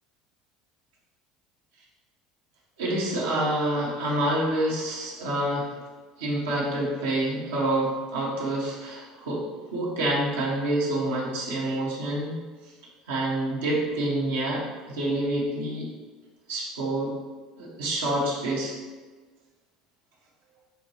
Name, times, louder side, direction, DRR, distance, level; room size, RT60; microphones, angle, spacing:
voice 1, 2.8-5.7 6.2-12.4 13.1-15.9 16.5-17.1 17.6-18.7, right 1 dB, 85° right, -5 dB, 0.9 m, -27 dB
5.7 x 2.2 x 2.9 m, 1.4 s
hypercardioid pair, 75°, 0 cm